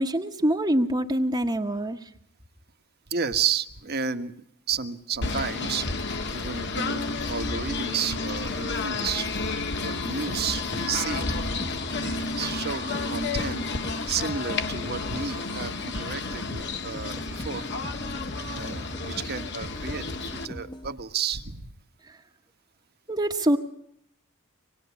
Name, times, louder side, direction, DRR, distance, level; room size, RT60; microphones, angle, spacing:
voice 1, 0.0-2.1 22.1-22.2 23.1-23.6, right 1 dB, 20° right, 3 dB, 1.3 m, -25 dB
voice 2, 3.1-9.3 9.8-11.3 12.0-13.7 14.1-17.7 18.5-21.7, right 6 dB, 45° right, 8 dB, 1.5 m, -32 dB
Singing / Bird, 5.2-20.5, left 3 dB, 55° left, 1.7 m, -31 dB
sound 1, 9.9-20.9, left 1 dB, 20° left, 1.2 m, -41 dB
25.5 x 20.5 x 8.5 m, 0.71 s
head